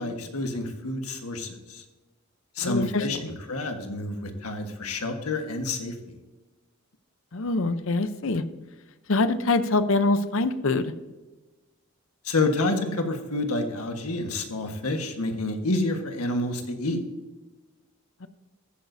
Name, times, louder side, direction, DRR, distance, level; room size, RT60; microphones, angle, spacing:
voice 1, 0.0-1.8 2.6-3.2 3.5-5.9 12.2-17.0, left 2 dB, 85° left, 5 dB, 1.4 m, -28 dB
voice 2, 2.6-3.3 7.3-8.4 9.1-10.9 18.2-18.3, left 3 dB, 60° left, 12 dB, 0.7 m, -24 dB
14.5 x 9.2 x 2.7 m, 1.2 s
head